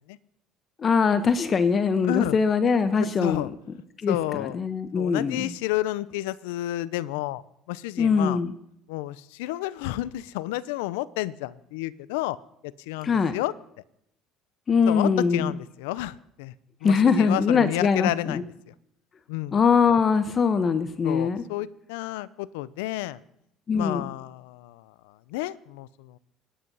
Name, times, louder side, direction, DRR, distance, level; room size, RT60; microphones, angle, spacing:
voice 1, 0.8-3.5 4.0-5.4 8.0-8.5 13.0-13.3 14.7-15.5 16.8-18.4 19.5-21.4 23.7-24.0, left 5 dB, 40° left, 11 dB, 1.2 m, -22 dB
voice 2, 2.0-2.4 3.2-3.5 4.1-4.6 4.9-8.4 8.9-12.4 12.6-13.5 14.9-16.5 16.8-18.7 19.3-19.6 21.0-23.2 23.7-26.2, left 16 dB, 85° left, 19 dB, 0.7 m, -31 dB
25.5 x 10.0 x 5.6 m, 0.76 s
supercardioid pair, 85°, 0 cm